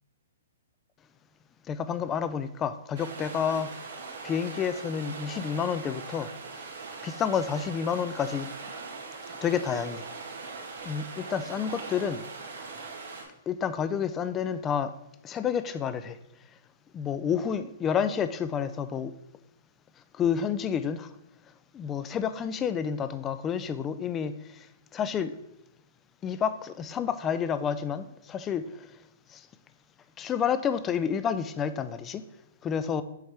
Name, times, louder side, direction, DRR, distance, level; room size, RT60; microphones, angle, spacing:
voice 1, 1.7-3.8 4.2-6.3 7.0-8.5 9.4-10.0 10.8-12.2 13.5-14.9 15.2-16.2 16.9-19.1 20.1-21.1 21.7-24.7 24.9-25.4 26.2-28.9 29.3-29.4 30.2-32.2 32.6-33.0, left 7 dB, 15° left, 0.3 m, -29 dB
sound 1, 2.9-13.2, right 4 dB, 60° right, 2.1 m, -41 dB
8.0 x 3.3 x 5.6 m
hypercardioid pair, 165°, 0 cm